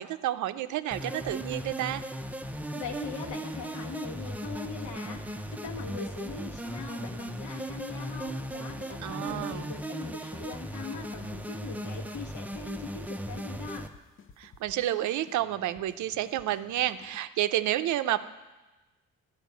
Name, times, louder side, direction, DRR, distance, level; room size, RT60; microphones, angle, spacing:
voice 1, 0.0-2.0 9.0-9.7 14.4-18.2, right 13 dB, 75° right, 12 dB, 0.5 m, -30 dB
sound 1, 0.9-13.9, right 1 dB, 5° right, 0.5 m, -37 dB
sound 2, 1.3-3.5 3.8-3.9 4.2-7.4 7.8-7.9 8.2-9.9 10.2-11.5 11.8-11.9 12.2-17.3, left 5 dB, 40° left, 0.7 m, -53 dB
voice 2, 2.7-13.9, left 5 dB, 75° left, 2 dB, 1.5 m, -41 dB
10.5 x 5.3 x 8.2 m, 1.1 s
cardioid pair, 90°, 30 cm